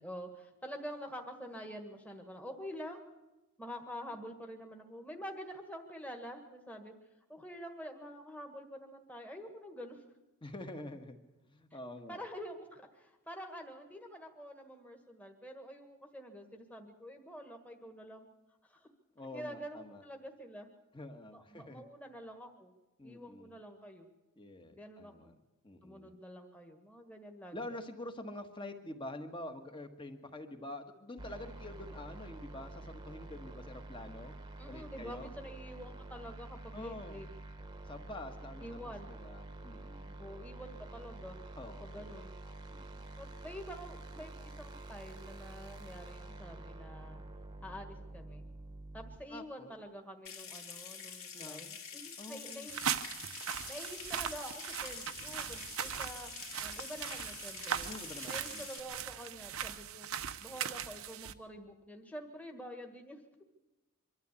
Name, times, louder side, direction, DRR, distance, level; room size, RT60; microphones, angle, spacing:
voice 1, 0.0-3.0 3.6-6.9 7.3-10.0 12.1-18.3 18.6-18.9 19.3-20.7 21.3-22.7 23.0-24.1 24.7-25.3 25.8-27.8 34.6-37.3 38.6-39.1 40.2-41.4 41.7-42.3 43.2-47.2 47.6-48.5 48.9-51.7 51.9-52.8 53.7-57.9 58.3-60.1 60.4-63.2, equal, 5° left, 4 dB, 1.6 m, -47 dB
voice 2, 10.4-11.2 11.5-12.2 19.1-20.0 20.9-21.8 23.0-23.6 24.4-25.3 25.6-26.1 27.5-34.3 34.7-35.3 36.7-37.2 37.8-38.8 39.1-40.2 41.5-42.2 42.7-43.1 49.3-49.7 51.3-51.8 52.2-52.7 57.8-58.7, left 1 dB, 20° left, 6 dB, 1.5 m, -47 dB
sound 1, 31.2-49.2, right 2 dB, 20° right, 1.2 m, -48 dB
Water tap faucet / Sink (filling or washing) / Trickle dribble, 50.3-58.8, left 6 dB, 80° left, 3.4 m, -47 dB
sound 2, 52.7-61.3, right 8 dB, 70° right, 0.9 m, -39 dB
24.0 x 13.0 x 8.4 m, 1.0 s
head